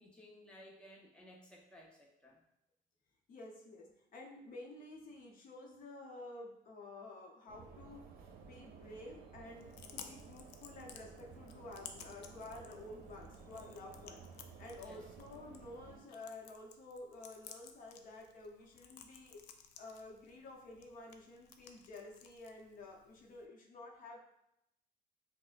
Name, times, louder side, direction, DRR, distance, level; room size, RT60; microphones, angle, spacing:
voice 1, 0.0-2.4 14.8-15.1, equal, 5° left, -3 dB, 0.8 m, -57 dB
voice 2, 3.3-8.1 8.4-19.5 19.8-24.2, left 2 dB, 55° left, 0 dB, 0.7 m, -51 dB
sound 1, 7.5-16.0, right 5 dB, 60° right, 0.7 m, -55 dB
Chewing mastication, 9.5-23.5, left 7 dB, 85° left, 0.4 m, -57 dB
6.1 x 2.1 x 2.4 m, 0.82 s
cardioid pair, 110°, 17 cm